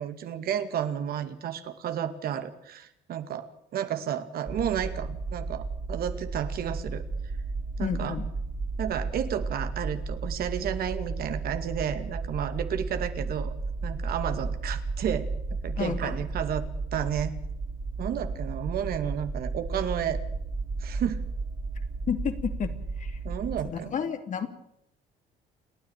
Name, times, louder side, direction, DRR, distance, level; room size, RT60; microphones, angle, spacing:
voice 1, 0.0-7.0 7.8-8.2 8.8-13.5 13.8-15.3 15.6-16.6 16.9-17.4 18.0-20.2 20.8-21.2 23.2-24.0, right 9 dB, 65° right, 9 dB, 2.3 m, -32 dB
sound 1, 4.5-23.7, right 3 dB, 25° right, 2.8 m, -33 dB
voice 2, 7.8-8.3 15.8-16.2 22.1-23.2 23.7-24.5, left 7 dB, 50° left, 8 dB, 2.8 m, -31 dB
29.5 x 10.0 x 9.0 m, 0.80 s
cardioid pair, 110°, 17 cm